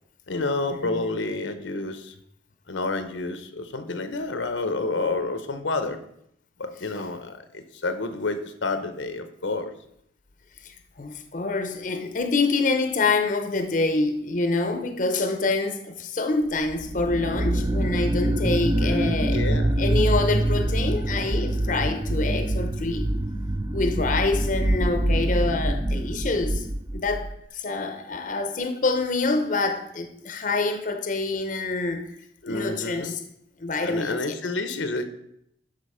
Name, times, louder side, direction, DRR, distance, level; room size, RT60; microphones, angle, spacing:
voice 1, 0.3-2.1 2.7-6.0 6.6-9.7 18.8-19.7 32.4-33.1 33.8-35.0, left 3 dB, 85° left, 9 dB, 0.9 m, -29 dB
voice 2, 10.6-19.4 19.8-23.1 23.7-26.7 26.9-32.1 32.5-33.2 33.6-34.3, left 3 dB, 45° left, 7 dB, 0.6 m, -26 dB
sound 1, 16.7-27.3, right 1 dB, 20° right, 0.3 m, -25 dB
11.5 x 3.9 x 5.5 m, 0.75 s
head